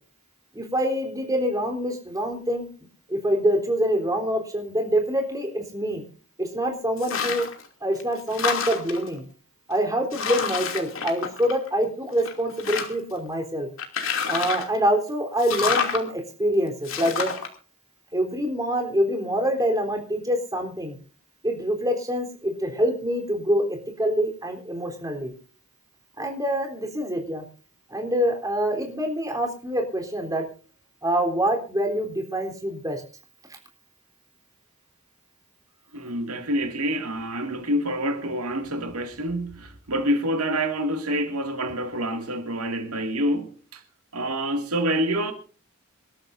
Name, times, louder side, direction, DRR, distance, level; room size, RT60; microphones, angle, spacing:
voice 1, 0.5-2.7 3.1-6.0 6.4-7.4 7.8-9.2 9.7-13.7 14.3-17.3 18.1-21.0 21.4-25.3 26.2-27.4 27.9-30.4 31.0-33.0, equal, 15° right, 3.7 m, -25 dB
sound 1, 7.0-7.6 8.0-9.1 9.7-9.8 10.1-11.8 12.2-13.1 13.8-14.8 15.4-16.0 16.8-17.5, left 6 dB, 60° left, 2.8 m, -28 dB
voice 2, 35.9-43.8 44.1-45.3, equal, 85° right, 2.3 m, -27 dB
26.0 x 13.0 x 2.7 m
head